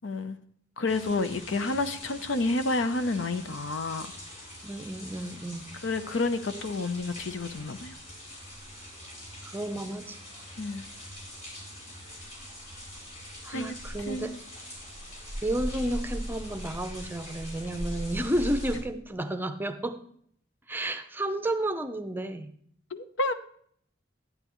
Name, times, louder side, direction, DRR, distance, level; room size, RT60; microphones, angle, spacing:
voice 1, 0.0-0.4 0.8-4.1 5.8-8.0 10.6-10.8 13.5-13.7 14.1-14.4 22.9-23.3, left 2 dB, 75° left, 0.7 m, -30 dB
sound 1, 0.9-18.8, equal, 40° left, 3.9 m, -41 dB
voice 2, 4.6-5.7 9.4-10.2 13.4-14.4 15.4-20.0 20.7-22.5, right 1 dB, 10° right, 0.6 m, -31 dB
11.0 x 9.1 x 3.1 m
head